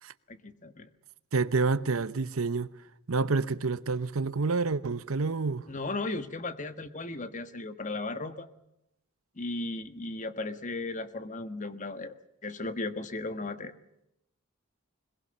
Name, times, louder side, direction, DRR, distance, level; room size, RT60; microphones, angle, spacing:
voice 1, 0.3-0.9 5.7-8.5 9.4-12.1 12.4-13.7, left 2 dB, 35° left, 1.4 m, -36 dB
voice 2, 1.3-2.7 3.1-5.7, right 4 dB, 85° right, 0.9 m, -28 dB
22.0 x 22.0 x 6.8 m
head